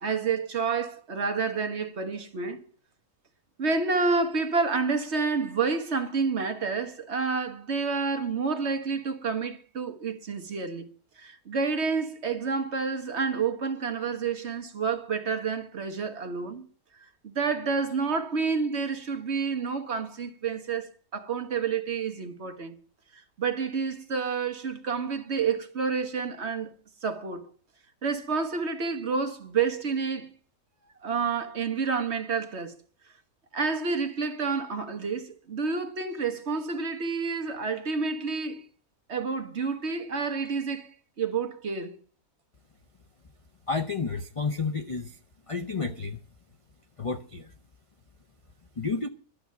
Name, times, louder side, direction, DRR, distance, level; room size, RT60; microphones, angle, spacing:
voice 1, 0.0-2.6 3.6-10.9 11.2-16.6 17.2-22.8 23.1-26.7 27.0-27.5 28.0-30.3 31.0-32.8 33.5-38.7 39.1-40.9 41.2-42.0, right 5 dB, 45° right, 1.7 m, -29 dB
voice 2, 43.7-45.2 45.5-46.2 47.0-47.5 48.8-49.1, left 4 dB, 45° left, 0.4 m, -31 dB
12.0 x 7.1 x 9.2 m
omnidirectional pair, 1.6 m